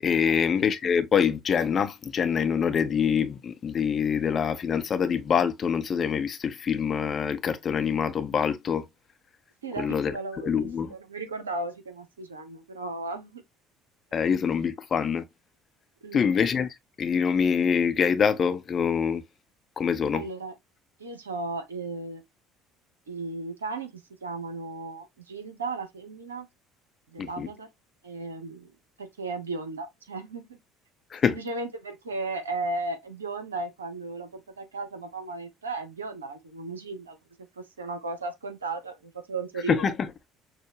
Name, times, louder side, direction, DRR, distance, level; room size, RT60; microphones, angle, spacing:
voice 1, 0.0-8.9 9.8-10.1 10.4-10.9 14.1-15.2 16.1-16.7 17.0-19.2 19.8-20.2 27.2-27.5 31.1-31.4 39.7-40.1, left 7 dB, 35° left, 0.7 m, -25 dB
voice 2, 9.6-13.4 16.0-16.3 20.1-20.5 21.0-22.2 23.1-26.5 27.1-27.7 28.0-28.7 29.0-30.6 31.2-39.9, right 3 dB, 80° right, 0.8 m, -35 dB
6.3 x 2.2 x 2.9 m
figure-of-eight pair, 60°, 0 cm